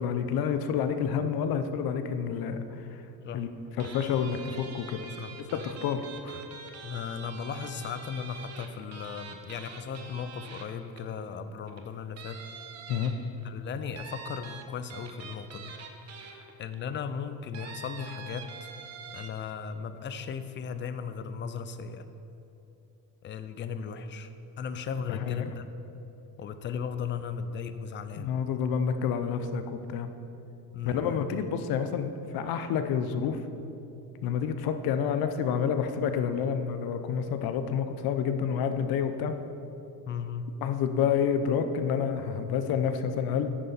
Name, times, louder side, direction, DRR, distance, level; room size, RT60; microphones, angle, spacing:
voice 1, 0.0-2.8 3.3-5.0 5.5-6.4 12.9-13.1 25.1-25.5 28.2-30.1 30.8-33.4 34.2-39.3 40.6-43.6, left 7 dB, 65° left, 9 dB, 0.8 m, -29 dB
sound 1, 3.8-11.2 11.7-11.8 12.2-13.4 14.0-16.8 17.5-19.3, right 6 dB, 40° right, 0.9 m, -45 dB
voice 2, 5.1-5.6 6.8-12.4 13.4-15.8 16.1-18.7 19.1-22.1 23.2-24.3 24.6-25.7 26.4-28.4 30.7-31.2 40.1-40.5, left 6 dB, 30° left, 11 dB, 0.4 m, -37 dB
10.0 x 9.5 x 4.1 m, 2.9 s
cardioid pair, 155°, 39 cm